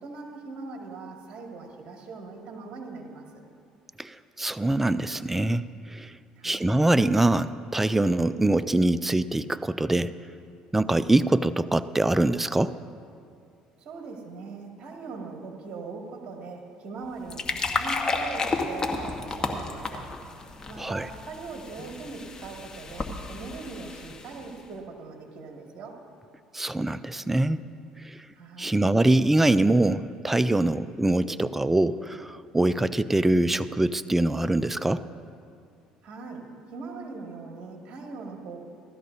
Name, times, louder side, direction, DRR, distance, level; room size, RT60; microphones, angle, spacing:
voice 1, 0.0-3.4 6.4-6.7 13.8-20.1 20.7-26.0 28.3-28.8 36.0-38.6, right 4 dB, 55° right, 0 dB, 2.2 m, -41 dB
voice 2, 4.0-6.1 6.4-10.2 10.7-12.8 20.8-21.1 26.5-27.6 28.0-28.2 28.6-35.0, right 2 dB, 10° right, 14 dB, 0.4 m, -24 dB
sound 1, 17.0-24.6, left 3 dB, 30° left, 1.3 m, -32 dB
17.5 x 13.0 x 2.7 m, 2.4 s
supercardioid pair, 75°, 2 cm